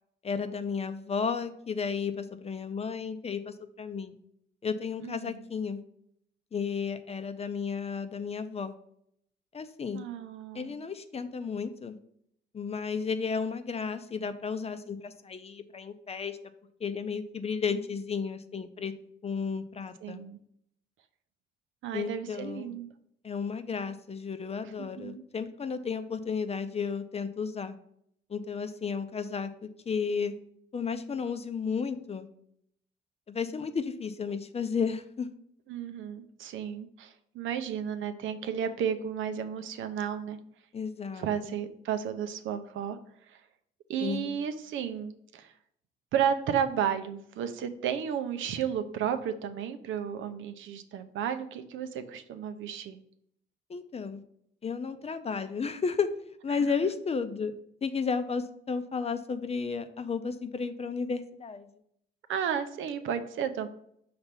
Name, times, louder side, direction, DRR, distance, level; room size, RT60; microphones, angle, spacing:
voice 1, 0.2-4.2 4.6-5.8 6.5-8.7 9.5-10.0 10.5-12.0 12.5-16.4 16.8-18.9 19.2-20.2 21.9-22.7 23.2-27.7 28.3-30.3 30.7-32.3 33.3-35.3 40.7-41.6 44.0-44.4 53.7-54.2 54.6-56.1 56.4-57.5 57.8-61.7, left 5 dB, 30° left, 10 dB, 0.6 m, -33 dB
voice 2, 5.0-5.4 9.9-10.7 20.0-20.4 21.8-22.9 25.0-25.2 35.7-40.4 41.1-43.0 43.3-43.4 43.9-45.5 46.1-53.0 62.3-63.7, right 8 dB, 75° right, 9 dB, 0.6 m, -33 dB
5.6 x 3.4 x 5.7 m, 0.71 s
cardioid pair, 90°, 20 cm